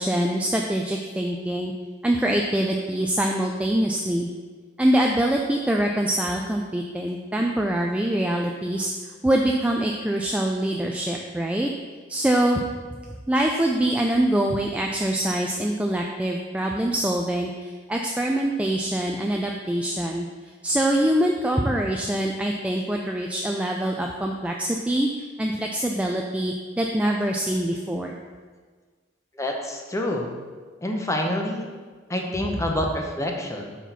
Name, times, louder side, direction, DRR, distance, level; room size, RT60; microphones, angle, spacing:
voice 1, 0.0-1.7 2.0-4.3 4.8-8.9 9.2-11.7 12.1-12.6 13.3-20.3 20.6-28.2, right 1 dB, 5° right, 1 dB, 0.3 m, -24 dB
voice 2, 29.4-30.3 30.8-31.7 32.1-33.8, left 1 dB, 15° left, 2 dB, 0.7 m, -27 dB
5.8 x 4.6 x 5.3 m, 1.5 s
head